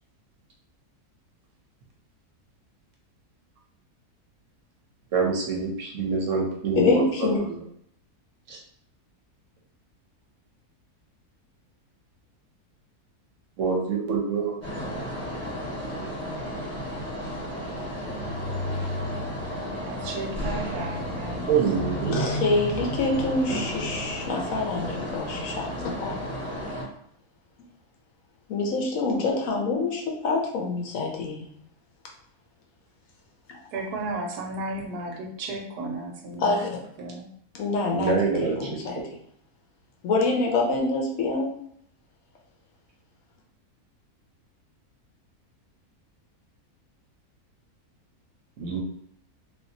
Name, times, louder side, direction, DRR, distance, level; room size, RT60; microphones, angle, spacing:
voice 1, 5.1-7.5 8.5-8.6 13.6-14.6 21.5-22.3 37.9-39.0 48.6-48.8, right 5 dB, 60° right, -1 dB, 0.9 m, -26 dB
voice 2, 6.8-7.4 22.1-26.2 28.5-31.5 33.5-33.6 36.4-36.8 37.6-39.0 40.0-41.6, left 3 dB, 65° left, 1 dB, 1.0 m, -26 dB
sound 1, 14.6-26.8, equal, 10° left, 1.1 m, -32 dB
voice 3, 19.6-21.5 33.7-36.7 37.0-37.3, right 2 dB, 85° right, 1 dB, 1.2 m, -34 dB
3.4 x 2.7 x 2.7 m, 0.68 s
omnidirectional pair, 1.6 m